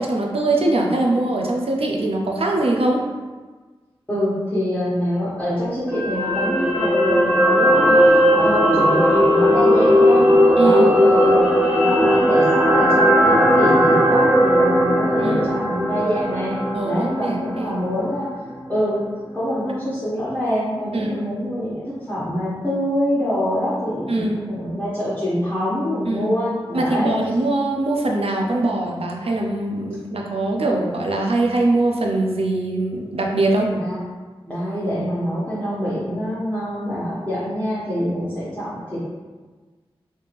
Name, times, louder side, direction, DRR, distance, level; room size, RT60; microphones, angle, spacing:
voice 1, 0.0-3.0 10.6-10.9 15.2-15.5 16.7-17.7 20.9-21.3 24.1-24.4 26.1-26.3 26.7-33.7, right 2 dB, 75° right, 0 dB, 0.6 m, -22 dB
voice 2, 4.1-10.3 10.6-11.5 11.8-16.5 16.8-18.3 18.7-19.0 19.3-27.1 33.8-34.0 34.5-39.1, equal, 5° left, -11 dB, 1.3 m, -25 dB
sound 1, 5.9-18.2 18.5-18.7, equal, 10° right, 1.1 m, -17 dB
3.3 x 2.7 x 3.4 m, 1.3 s
cardioid pair, 55°, 10 cm